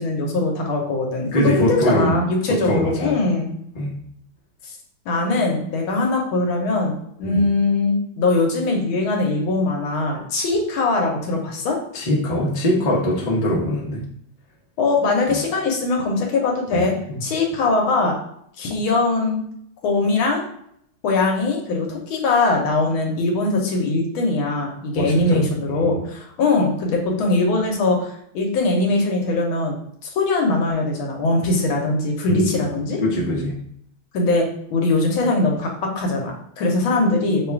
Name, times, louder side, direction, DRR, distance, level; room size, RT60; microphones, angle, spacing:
voice 1, 0.0-3.5 4.6-4.7 5.0-6.9 7.2-11.8 14.8-16.9 17.2-18.2 18.6-19.4 19.8-20.4 21.0-29.8 30.0-33.0 34.1-37.5, left 3 dB, 75° left, 1 dB, 1.6 m, -21 dB
voice 2, 1.3-2.2 2.5-3.2 3.7-3.9 7.2-7.5 11.9-14.0 15.3-15.4 16.7-17.2 24.9-25.5 25.8-26.0 32.3-32.6 33.0-33.6, equal, 40° left, -4 dB, 0.7 m, -22 dB
3.7 x 2.4 x 4.4 m, 0.70 s
omnidirectional pair, 2.3 m